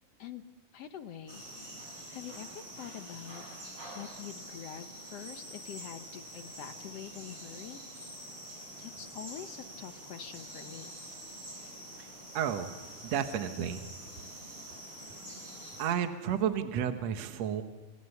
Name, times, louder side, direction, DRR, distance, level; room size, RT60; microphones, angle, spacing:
voice 1, 0.7-3.4 3.9-8.1 8.8-10.9, left 9 dB, 70° left, 8 dB, 1.5 m, -46 dB
sound 1, 1.3-15.8, right 1 dB, 35° right, 8.2 m, -46 dB
voice 2, 12.3-12.7 13.0-13.8 15.8-17.6, right 9 dB, 60° right, 7 dB, 2.1 m, -31 dB
27.0 x 27.0 x 7.0 m, 1.3 s
omnidirectional pair, 4.0 m